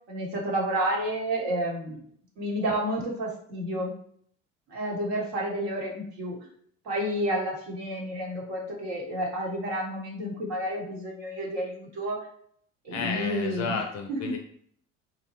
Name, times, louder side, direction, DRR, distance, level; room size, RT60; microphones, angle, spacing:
voice 1, 0.1-2.0 2.4-3.9 4.7-6.3 6.8-12.3 12.8-13.8 14.1-14.4, equal, 60° right, -2 dB, 1.0 m, -30 dB
voice 2, 12.9-14.4, left 5 dB, 45° left, 3 dB, 0.5 m, -32 dB
2.8 x 2.1 x 2.9 m, 0.63 s
hypercardioid pair, 65°, 38 cm